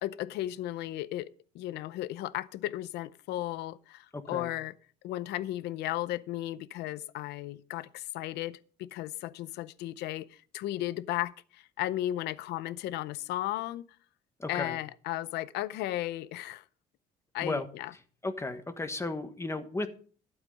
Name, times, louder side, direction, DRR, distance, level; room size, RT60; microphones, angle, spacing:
voice 1, 0.0-4.7 5.0-13.8 14.5-16.6 17.3-17.9, left 14 dB, 80° left, 0.6 m, -35 dB
voice 2, 4.1-4.5 14.4-14.8 17.4-17.6 18.2-19.9, left 2 dB, 15° left, 1.4 m, -34 dB
12.0 x 8.1 x 5.3 m
cardioid pair, 110°, 17 cm